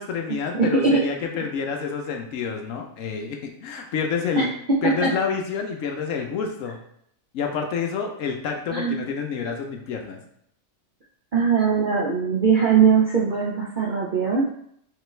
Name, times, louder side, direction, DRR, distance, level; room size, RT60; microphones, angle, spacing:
voice 1, 0.0-4.5 4.8-6.8 7.3-10.2, left 6 dB, 65° left, 3 dB, 0.9 m, -28 dB
voice 2, 0.5-1.0 4.4-5.1 8.7-9.0 11.3-14.5, right 5 dB, 80° right, -4 dB, 0.4 m, -20 dB
3.6 x 3.4 x 3.1 m, 0.70 s
omnidirectional pair, 1.6 m